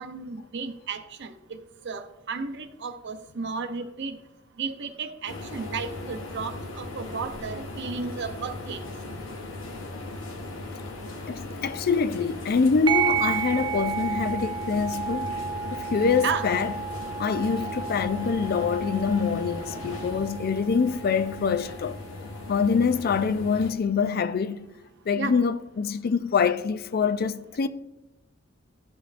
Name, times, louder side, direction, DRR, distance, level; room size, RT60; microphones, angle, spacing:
voice 1, 0.0-1.6 1.8-4.2 4.6-8.8 16.2-16.5 25.2-25.3, right 5 dB, 60° right, 0.6 m, -33 dB
sound 1, 5.3-23.7, left 2 dB, 80° left, 0.9 m, -38 dB
voice 2, 11.3-15.3 15.8-16.7 17.2-22.0 22.5-24.7 25.1-27.7, left 5 dB, 50° left, 0.4 m, -25 dB
sound 2, 12.9-21.9, right 8 dB, 25° right, 0.3 m, -32 dB
12.5 x 5.2 x 2.5 m
head